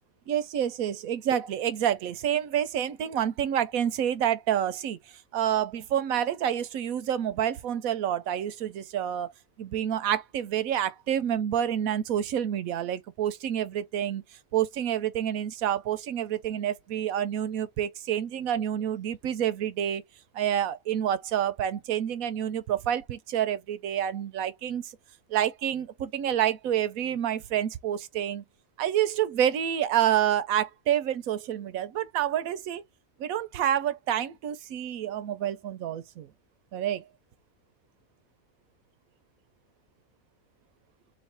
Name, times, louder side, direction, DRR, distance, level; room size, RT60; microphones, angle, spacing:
voice 1, 0.3-5.0 5.3-9.3 9.6-14.2 14.5-20.0 20.3-25.0 25.3-28.4 28.8-32.8 33.2-36.3 36.7-37.1, right 10 dB, 80° right, 1.1 m, -28 dB
3.2 x 2.9 x 4.3 m
omnidirectional pair, 1.5 m